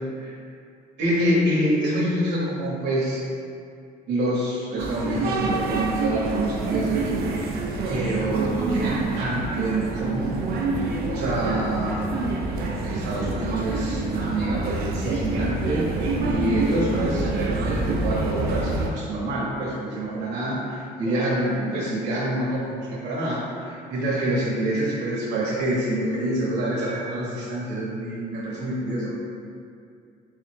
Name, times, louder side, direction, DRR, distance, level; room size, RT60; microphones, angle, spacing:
voice 1, 1.0-3.2 4.1-7.1 7.4-7.6 7.9-12.1 12.8-15.8 16.2-29.2, right 1 dB, 85° right, -7 dB, 1.0 m, -26 dB
sound 1, 4.8-18.9, right 3 dB, 65° right, 0.5 m, -27 dB
3.5 x 3.3 x 3.3 m, 2.4 s
cardioid pair, 110°, 17 cm